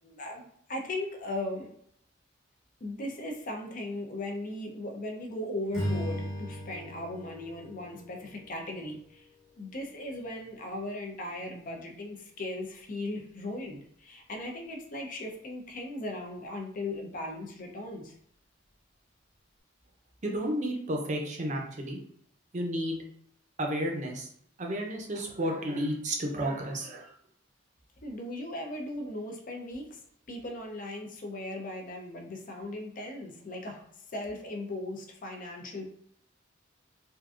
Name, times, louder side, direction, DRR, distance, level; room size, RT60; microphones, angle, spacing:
voice 1, 0.0-1.7 2.8-9.3 9.6-18.2 28.0-30.0 30.3-33.9 34.1-35.9, left 1 dB, 45° left, 2 dB, 0.5 m, -38 dB
Strum, 5.7-10.1, equal, 20° left, 1.2 m, -38 dB
voice 2, 20.2-22.0 22.5-23.0 23.6-24.3 24.6-27.1, equal, 40° right, 1 dB, 0.6 m, -32 dB
3.6 x 2.5 x 2.4 m, 0.65 s
head